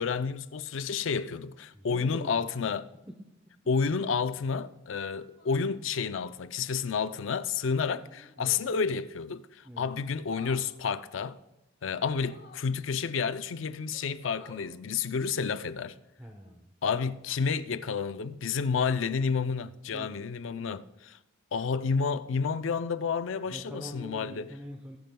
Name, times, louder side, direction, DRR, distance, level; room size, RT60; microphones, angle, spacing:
voice 1, 0.0-2.9 3.7-11.4 11.8-16.0 16.8-21.2 21.5-24.5, left 5 dB, 80° left, 0.5 m, -30 dB
voice 2, 1.7-2.7 3.1-3.2 8.4-8.6 9.6-9.9 16.2-16.7 19.9-20.2 23.5-25.0, equal, 10° right, 0.8 m, -44 dB
sound 1, 3.6-4.1 5.3-5.7 8.0-8.4 10.2-10.7 12.2-12.7 13.5-13.6 13.9-14.7 16.3-16.5, left 3 dB, 55° left, 1.7 m, -52 dB
20.0 x 9.1 x 2.3 m
head